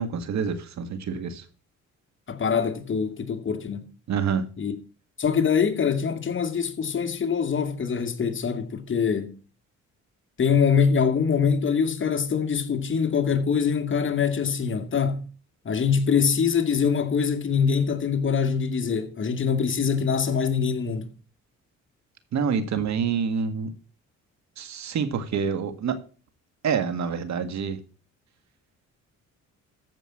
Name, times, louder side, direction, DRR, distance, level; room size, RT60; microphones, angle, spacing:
voice 1, 0.0-1.4 4.1-4.4 22.3-23.7 24.6-26.0 26.6-27.8, right 6 dB, 65° right, 1.9 m, -27 dB
voice 2, 2.3-3.9 4.6-4.7 5.2-9.4 10.4-15.2 15.6-21.1, left 6 dB, 40° left, 2.1 m, -24 dB
14.5 x 5.4 x 7.4 m
cardioid pair, 90°, 30 cm